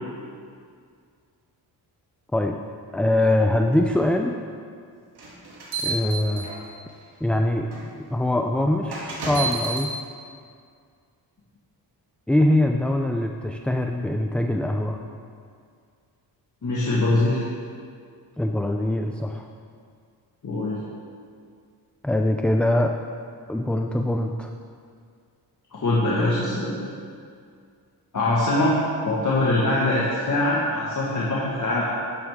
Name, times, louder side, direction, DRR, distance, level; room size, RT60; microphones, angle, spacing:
voice 1, 2.9-4.4 5.8-6.5 7.2-9.9 12.3-15.0 18.4-19.4 22.0-22.9 23.5-24.5, left 1 dB, 5° left, 3 dB, 0.3 m, -23 dB
sound 1, 5.2-6.9 7.7-7.8 8.9-9.9, right 4 dB, 70° right, 2.5 m, -30 dB
voice 2, 16.6-17.4 20.4-20.8 25.7-26.8 28.1-28.7 29.0-31.8, left 2 dB, 45° left, -7 dB, 1.6 m, -22 dB
11.0 x 9.3 x 3.6 m, 2.2 s
wide cardioid pair, 120°, 41 cm